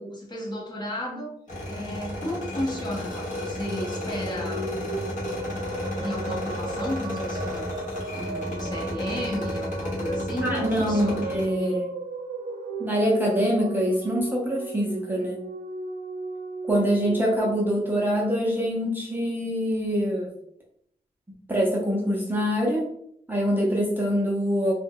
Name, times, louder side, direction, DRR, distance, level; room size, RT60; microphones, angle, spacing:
voice 1, 0.0-1.3 1.7-4.7 6.0-11.8, left 1 dB, 25° left, -2 dB, 0.7 m, -34 dB
sound 1, 1.5-11.4, left 1 dB, 50° left, 0.9 m, -32 dB
sound 2, 4.0-18.5, right 3 dB, 85° right, 0.4 m, -36 dB
voice 2, 10.4-11.8 12.8-15.4 16.7-20.3 21.5-22.9 23.3-24.7, equal, 10° right, -4 dB, 0.5 m, -24 dB
2.2 x 2.1 x 3.4 m, 0.71 s
wide cardioid pair, 145°, 16 cm